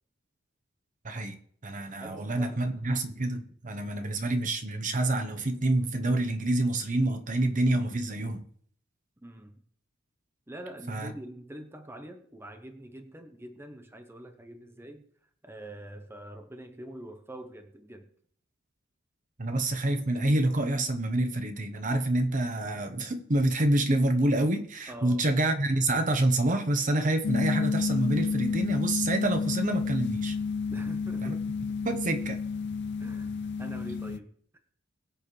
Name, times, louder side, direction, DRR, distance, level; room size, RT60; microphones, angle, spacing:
voice 1, 1.0-1.4 1.6-8.4 10.9-11.1 19.4-30.4 31.2-31.3 31.8-32.4, right 1 dB, 40° right, 1.0 m, -27 dB
voice 2, 2.0-2.6 9.2-9.6 10.5-15.1 15.4-18.1 24.9-25.2 30.7-31.4 33.0-34.3, right 1 dB, 10° right, 0.9 m, -44 dB
sound 1, 27.2-34.2, left 5 dB, 60° left, 0.6 m, -30 dB
21.5 x 7.4 x 3.3 m
head